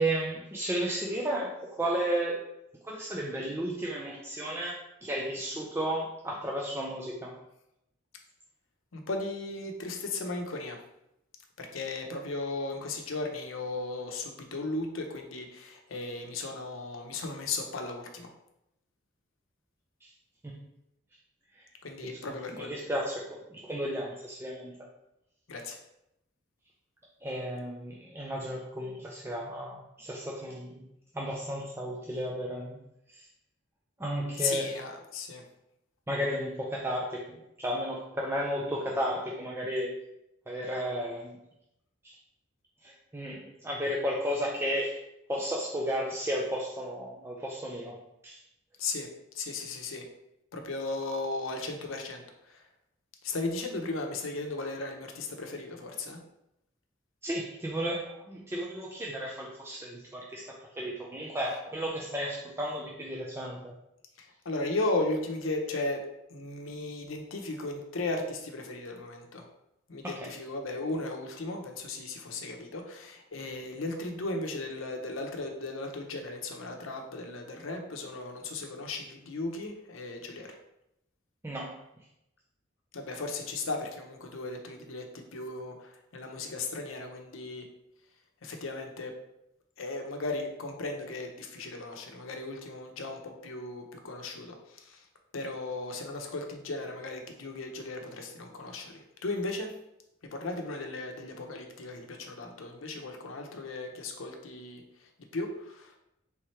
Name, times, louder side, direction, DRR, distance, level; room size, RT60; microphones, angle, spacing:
voice 1, 0.0-2.4 2.8-7.4 20.0-20.1 22.0-22.2 22.5-24.9 27.2-30.8 31.1-32.8 33.1-33.3 34.0-34.7 36.1-39.9 40.5-41.4 42.0-42.1 42.8-45.0 45.3-48.0 48.2-48.4 57.2-63.7 70.0-70.3 81.4-81.7, equal, 10° right, -3 dB, 0.4 m, -33 dB
voice 2, 8.9-10.8 11.6-18.3 21.8-22.8 25.5-25.8 34.4-35.4 48.8-49.1 49.3-50.0 50.5-52.6 53.2-56.2 61.4-61.6 64.2-66.0 66.3-69.4 69.9-80.5 82.9-87.6 88.4-89.1 89.8-95.0 95.3-99.7 100.3-104.8 105.3-105.9, left 2 dB, 80° left, 3 dB, 0.7 m, -36 dB
3.5 x 3.2 x 4.3 m, 0.84 s
head